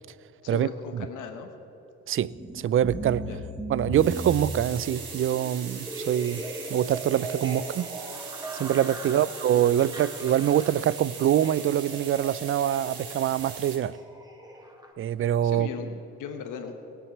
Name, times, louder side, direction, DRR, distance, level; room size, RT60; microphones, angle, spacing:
voice 1, 0.4-1.5 3.2-3.4 9.1-9.3 15.4-16.7, left 6 dB, 85° left, 1.2 m, -37 dB
voice 2, 2.1-3.3 3.7-6.4 6.7-7.9 8.6-14.0 15.0-15.7, right 11 dB, 45° right, 0.4 m, -24 dB
sound 1, 2.3-14.9, right 1 dB, 15° right, 1.7 m, -39 dB
sound 2, 3.9-13.8, right 5 dB, 85° right, 2.7 m, -40 dB
17.5 x 7.6 x 7.3 m
cardioid pair, 90°, 30 cm